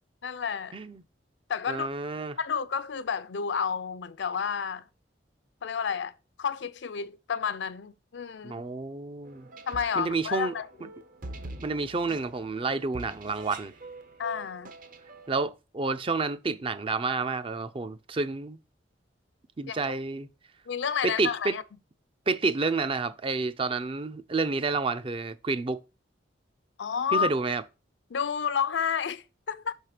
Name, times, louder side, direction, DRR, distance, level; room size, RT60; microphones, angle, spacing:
voice 1, 0.2-0.8 1.5-1.9 2.4-4.8 5.6-6.1 6.4-8.6 9.7-10.9 14.2-14.7 19.7-19.8 20.7-21.6 26.8-27.3 28.1-29.7, left 7 dB, 70° left, 0.5 m, -30 dB
voice 2, 1.7-2.4 8.4-9.5 10.0-10.5 11.6-13.7 15.3-18.6 19.6-20.3 21.0-21.5 22.3-25.8 27.1-27.6, right 3 dB, 30° right, 0.5 m, -29 dB
sound 1, 9.2-15.3, right 2 dB, 50° right, 0.8 m, -45 dB
5.7 x 4.5 x 4.9 m
head